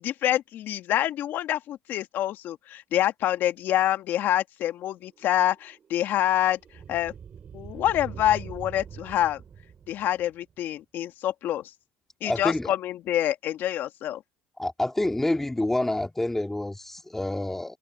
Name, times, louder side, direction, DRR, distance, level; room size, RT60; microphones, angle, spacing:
voice 1, 0.0-6.6 6.9-7.1 7.5-9.4 9.9-11.6 12.2-14.2, left 12 dB, 55° left, 1.9 m, -26 dB
sound 1, 4.9-10.5, right 7 dB, 35° right, 6.5 m, -44 dB
voice 2, 12.2-12.7 14.6-17.8, left 1 dB, 10° left, 2.4 m, -27 dB
supercardioid pair, 110°, 4 cm